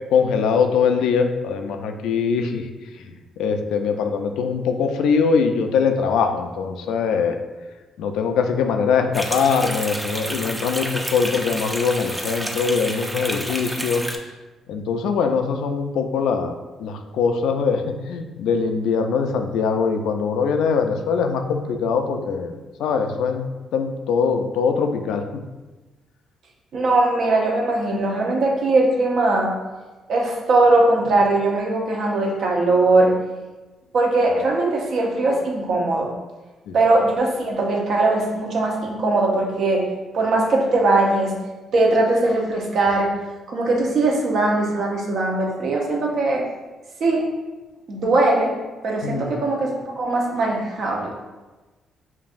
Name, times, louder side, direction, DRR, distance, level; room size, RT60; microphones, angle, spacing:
voice 1, 0.1-2.7 3.4-7.4 8.0-14.0 14.7-23.4 23.7-25.2 36.7-36.8 49.0-49.3, left 5 dB, 85° left, 6 dB, 0.3 m, -22 dB
sound 1, 9.1-14.2, right 1 dB, 10° right, 0.4 m, -30 dB
voice 2, 26.7-29.6 30.1-33.2 33.9-36.1 36.7-39.9 40.1-41.3 41.7-43.1 43.5-46.5 47.0-47.3 47.9-48.5 48.8-51.1, right 2 dB, 65° right, -1 dB, 0.8 m, -20 dB
5.0 x 2.6 x 2.5 m, 1.2 s
cardioid pair, 90°, 0 cm